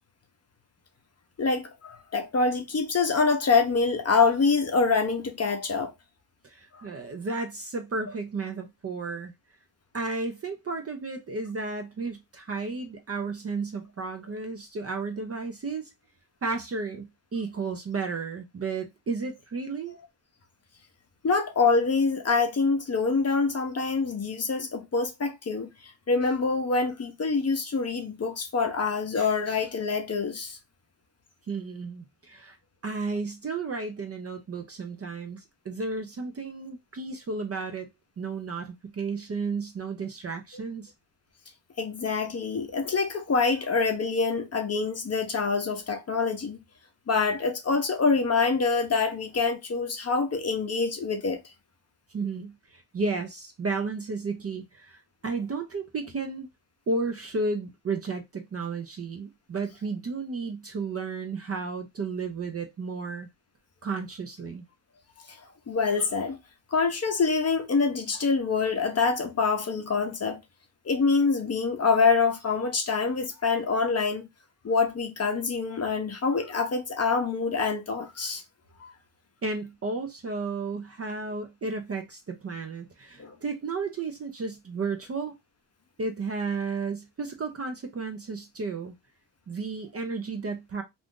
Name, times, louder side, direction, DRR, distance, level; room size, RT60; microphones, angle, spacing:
voice 1, 1.4-5.9 21.2-30.6 41.8-46.6 47.1-51.4 65.3-65.4 65.7-66.4 66.7-70.4 70.8-74.3 74.6-78.4 78.8-78.9 83.2-83.4, left 4 dB, 35° left, 0.7 m, -25 dB
voice 2, 6.4-9.3 9.9-15.9 16.4-20.0 31.5-32.6 32.8-37.9 38.2-40.9 52.1-56.5 56.9-63.3 63.8-64.6 79.4-85.3 86.0-88.9 89.5-90.8, right 4 dB, 30° right, 0.5 m, -33 dB
2.5 x 2.5 x 3.6 m
cardioid pair, 115°, 48 cm